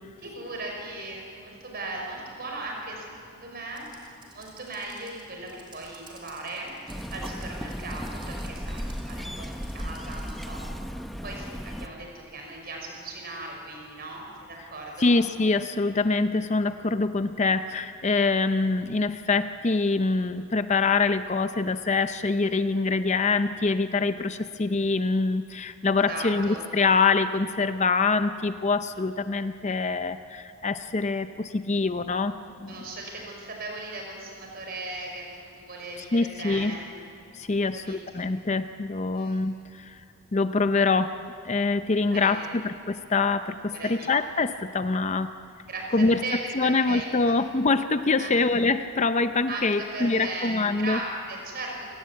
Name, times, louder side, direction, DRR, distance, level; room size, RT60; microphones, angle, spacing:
voice 1, 0.2-10.7 11.2-15.2 26.1-26.6 32.7-36.9 37.7-38.3 39.2-39.4 42.1-42.6 43.7-44.1 45.7-46.0 46.2-47.3 48.2-48.4 49.5-52.0, right 2 dB, 45° right, 0 dB, 5.7 m, -38 dB
Computer keyboard, 3.8-10.5, right 3 dB, 20° right, 3.9 m, -53 dB
sound 1, 6.9-11.9, equal, ahead, 0.8 m, -35 dB
voice 2, 15.0-32.8 36.1-36.8 37.3-40.0 40.3-41.2 41.4-45.3 45.9-46.2 46.5-51.0, left 3 dB, 30° left, 10 dB, 0.5 m, -25 dB
28.5 x 18.0 x 8.4 m, 2.5 s
head